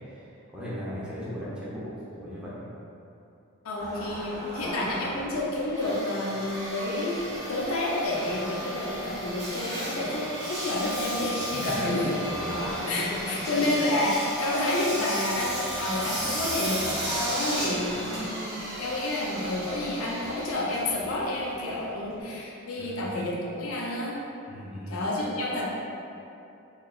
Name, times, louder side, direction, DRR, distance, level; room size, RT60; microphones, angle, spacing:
voice 1, 0.5-2.6 11.5-12.0 12.4-13.7 22.8-23.2 24.5-25.0, equal, 5° right, -10 dB, 0.7 m, -37 dB
voice 2, 3.6-7.2 7.5-12.0 12.9-24.2 24.9-25.6, left 1 dB, 70° left, -4 dB, 0.7 m, -29 dB
Engine, 3.8-22.2, equal, 50° right, 1.4 m, -34 dB
4.8 x 3.1 x 2.4 m, 2.7 s
head